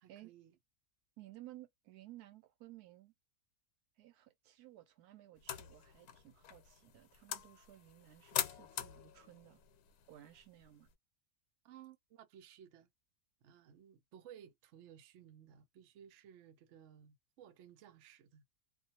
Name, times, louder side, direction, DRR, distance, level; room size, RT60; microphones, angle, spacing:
voice 1, 0.0-0.6 11.6-12.9 13.4-18.4, right 9 dB, 65° right, 0.8 m, -58 dB
voice 2, 1.2-3.1 4.0-9.6 10.1-10.9, right 14 dB, 85° right, 1.1 m, -57 dB
sound 1, 5.4-10.9, left 10 dB, 90° left, 1.1 m, -44 dB
2.4 x 2.3 x 2.7 m
omnidirectional pair, 1.6 m